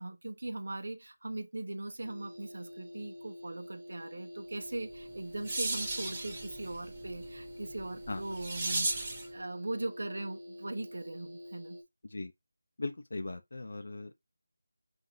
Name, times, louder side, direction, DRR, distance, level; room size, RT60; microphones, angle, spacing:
voice 1, 0.0-9.1 9.3-11.8, right 2 dB, 65° right, 0.7 m, -40 dB
sound 1, 2.0-11.8, equal, 45° right, 1.5 m, -47 dB
sound 2, 4.9-9.3, right 2 dB, 20° right, 1.1 m, -37 dB
voice 2, 12.8-14.1, left 2 dB, 55° left, 0.5 m, -38 dB
5.6 x 2.6 x 2.7 m
figure-of-eight pair, 175°, 0 cm